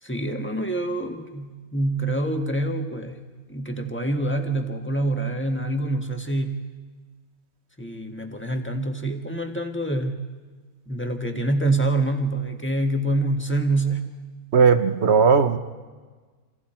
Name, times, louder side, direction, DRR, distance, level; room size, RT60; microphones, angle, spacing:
voice 1, 0.0-3.2 3.5-6.6 7.8-10.2 10.9-14.1, right 2 dB, 10° left, 4 dB, 1.5 m, -26 dB
voice 2, 14.5-15.6, right 5 dB, 50° right, 9 dB, 1.1 m, -17 dB
28.0 x 26.5 x 4.4 m, 1.4 s
omnidirectional pair, 1.6 m